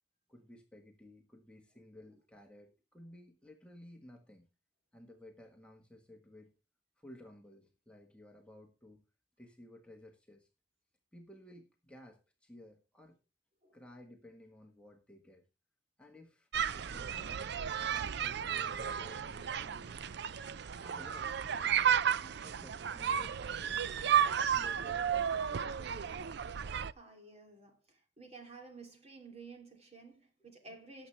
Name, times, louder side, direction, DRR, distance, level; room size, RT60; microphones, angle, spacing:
voice 1, 0.3-4.5 4.9-6.6 7.0-9.0 9.4-10.5 11.1-13.2 13.7-15.5 16.0-16.5 16.7-17.5 17.8-20.1 20.8-21.8 22.2-24.2 24.5-26.0, left 1 dB, 5° left, 1.4 m, -56 dB
sound 1, 16.5-26.9, right 8 dB, 60° right, 0.5 m, -33 dB
voice 2, 26.9-31.1, right 3 dB, 35° right, 3.1 m, -53 dB
18.0 x 7.4 x 3.3 m
head